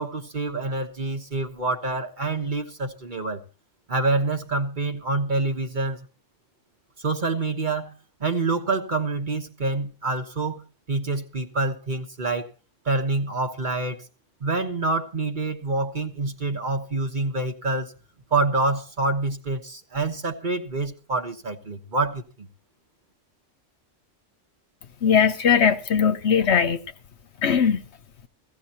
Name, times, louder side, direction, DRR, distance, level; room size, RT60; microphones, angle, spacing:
voice 1, 0.0-3.4 3.9-6.0 7.0-7.9 8.2-10.6 10.9-12.5 12.8-14.0 14.4-17.9 18.3-22.5, right 3 dB, 40° right, 1.3 m, -26 dB
voice 2, 25.0-26.8 27.4-27.8, left 7 dB, 65° left, 1.1 m, -20 dB
16.5 x 15.0 x 2.9 m
omnidirectional pair, 1.3 m